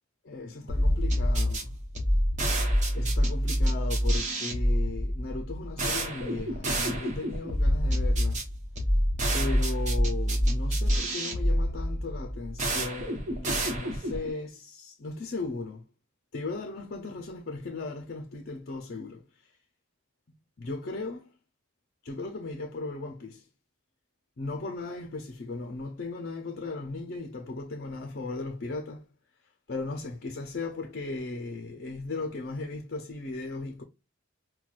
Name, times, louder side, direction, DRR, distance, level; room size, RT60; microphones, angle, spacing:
voice 1, 0.2-1.7 2.9-8.4 9.3-15.8 16.3-19.5 20.6-21.3 22.0-23.5 24.4-29.1 29.7-33.8, left 3 dB, 50° left, 0.5 m, -37 dB
sound 1, 0.7-14.3, equal, 35° right, 1.0 m, -27 dB
5.8 x 2.2 x 2.4 m
head